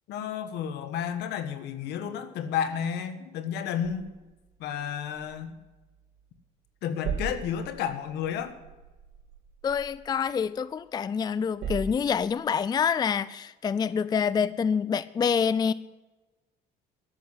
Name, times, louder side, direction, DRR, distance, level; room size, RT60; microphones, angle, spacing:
voice 1, 0.1-4.1 4.6-5.5 6.8-8.6, left 8 dB, 80° left, 9 dB, 1.5 m, -31 dB
sound 1, 3.8-6.4 6.7-10.9 11.3-12.6, right 5 dB, 85° right, 3.4 m, -40 dB
voice 2, 9.6-15.7, left 6 dB, 25° left, 17 dB, 0.4 m, -26 dB
12.5 x 7.7 x 9.9 m, 1.2 s
cardioid pair, 110°, 17 cm